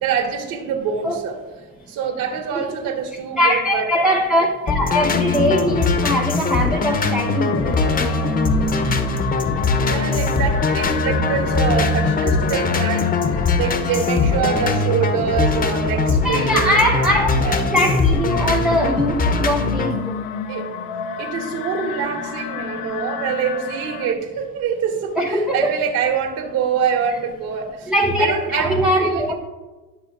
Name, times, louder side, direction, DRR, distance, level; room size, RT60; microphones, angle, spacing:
voice 1, 0.0-1.3 1.9-3.9 9.8-13.1 13.6-16.8 17.4-17.6 20.5-20.7 21.2-27.9 28.2-29.2, right 7 dB, 60° right, 1 dB, 2.6 m, -25 dB
voice 2, 2.6-2.9 3.4-8.1 16.2-20.2 25.2-25.7 27.9-29.3, equal, ahead, 0 dB, 0.4 m, -21 dB
sound 1, 4.7-19.9, left 3 dB, 20° left, 0.8 m, -21 dB
sound 2, 5.0-24.1, left 6 dB, 70° left, 1.1 m, -31 dB
19.5 x 6.9 x 2.5 m, 1.3 s
supercardioid pair, 120°, 47 cm